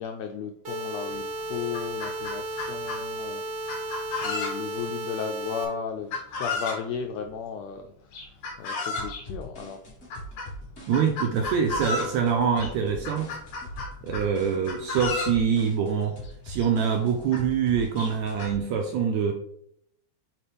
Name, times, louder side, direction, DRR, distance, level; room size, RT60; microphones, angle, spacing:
voice 1, 0.0-3.9 4.2-9.8 11.9-12.0 14.0-14.3, left 7 dB, 90° left, 4 dB, 1.5 m, -35 dB
sound 1, 0.6-5.6, right 2 dB, 45° right, 2.1 m, -34 dB
Chicken rooster, 1.1-1.2 1.6-3.0 3.7-4.8 6.1-6.8 8.1-9.2 10.1-10.5 10.9-12.2 12.6-12.7 13.0-14.3 14.6-15.4 16.3-16.4 16.6-16.7 17.3-17.4 18.0-18.5, left 3 dB, 70° left, 2.9 m, -32 dB
sound 2, 9.0-18.6, equal, 30° left, 1.3 m, -42 dB
voice 2, 10.9-13.3 14.0-16.2 16.4-19.3, right 7 dB, 80° right, 3 dB, 1.7 m, -25 dB
7.1 x 4.4 x 3.4 m, 0.69 s
omnidirectional pair, 3.7 m